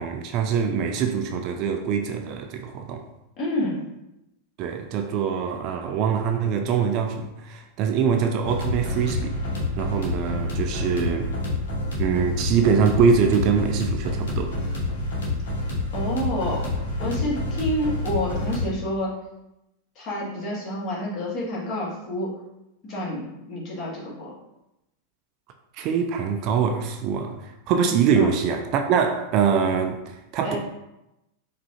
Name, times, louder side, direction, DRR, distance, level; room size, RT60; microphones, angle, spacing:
voice 1, 0.0-3.0 4.6-9.4 9.8-11.3 12.0-14.5 25.8-30.6, right 6 dB, 40° right, 5 dB, 0.3 m, -23 dB
voice 2, 3.4-3.8 15.9-16.7 17.0-19.2 19.9-22.4 22.8-24.3 28.1-28.3 30.4-30.6, equal, 35° left, -5 dB, 1.4 m, -28 dB
sound 1, 8.4-18.7, left 2 dB, 60° left, 1.1 m, -28 dB
4.7 x 2.4 x 2.7 m, 0.91 s
figure-of-eight pair, 90°, 0 cm